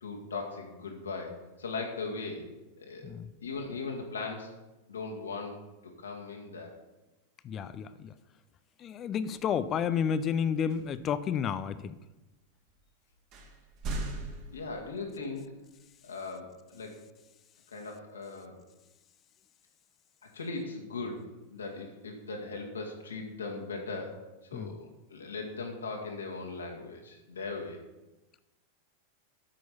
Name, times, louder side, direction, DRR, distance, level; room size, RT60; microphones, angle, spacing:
voice 1, 0.0-2.5 2.8-3.1 3.4-4.5 4.9-6.7 14.5-15.5 16.0-17.0 17.7-18.6 20.3-27.8, left 3 dB, 70° left, 1 dB, 2.1 m, -39 dB
voice 2, 7.4-8.1 8.8-11.9 24.5-24.8, left 7 dB, 30° left, 14 dB, 0.5 m, -31 dB
sound 1, 9.4-9.7 10.7-11.1 11.8-11.9 12.7-12.8 13.3-15.2, right 2 dB, 40° right, 2.0 m, -39 dB
9.0 x 6.2 x 7.0 m, 1.0 s
figure-of-eight pair, 90°, 0 cm